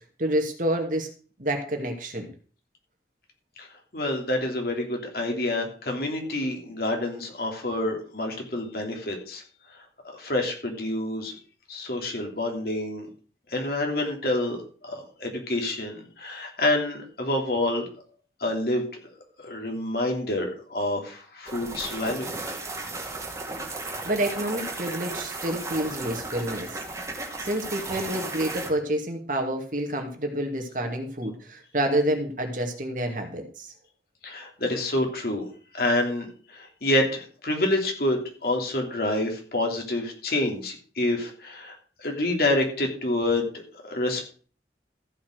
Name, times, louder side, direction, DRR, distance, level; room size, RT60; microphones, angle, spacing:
voice 1, 0.2-1.1 1.4-2.3 24.0-26.7 27.4-33.7, right 1 dB, 50° right, 3 dB, 2.3 m, -28 dB
voice 2, 3.9-9.4 10.0-11.4 11.7-13.1 13.5-17.9 18.4-19.0 19.4-22.3 34.2-35.5 35.7-44.3, left 1 dB, 60° left, 2 dB, 3.1 m, -28 dB
sound 1, 21.5-28.7, right 2 dB, 20° right, 2.2 m, -35 dB
14.5 x 5.9 x 6.4 m, 0.41 s
head